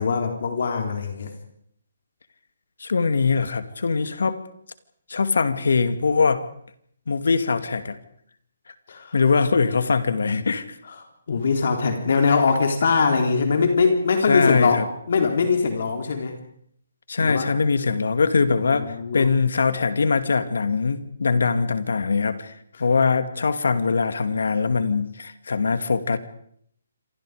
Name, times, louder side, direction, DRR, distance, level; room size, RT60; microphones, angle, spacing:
voice 1, 0.0-1.3 8.9-9.2 11.3-16.4 17.2-17.6 18.7-19.3, left 5 dB, 50° left, 4 dB, 3.7 m, -22 dB
voice 2, 2.8-4.4 5.1-6.5 7.1-8.0 9.1-10.6 14.3-14.9 17.1-22.5 22.8-26.2, left 4 dB, 80° left, 10 dB, 2.4 m, -22 dB
27.5 x 25.0 x 5.1 m, 0.67 s
hypercardioid pair, 175°, 0 cm